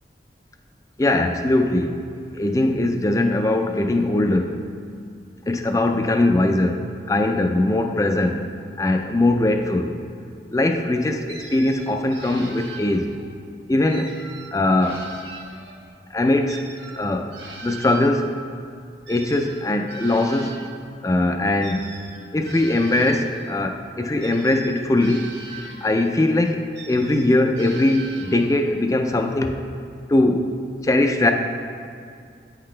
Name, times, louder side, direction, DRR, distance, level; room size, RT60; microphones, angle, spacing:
voice 1, 1.0-2.0 2.3-4.6 5.5-9.9 10.5-13.1 13.7-14.1 14.5-15.1 16.1-16.6 17.0-17.4 17.6-18.3 19.1-20.6 21.0-21.9 22.3-25.3 25.6-29.6 30.1-30.5 30.8-31.3, left 2 dB, 20° left, 5 dB, 0.4 m, -21 dB
sound 1, 11.3-13.3 13.9-15.9 16.5-20.8 21.6-23.6 24.2-26.2 26.7-28.7, right 3 dB, 85° right, 1.0 m, -41 dB
8.9 x 5.9 x 3.2 m, 2.3 s
head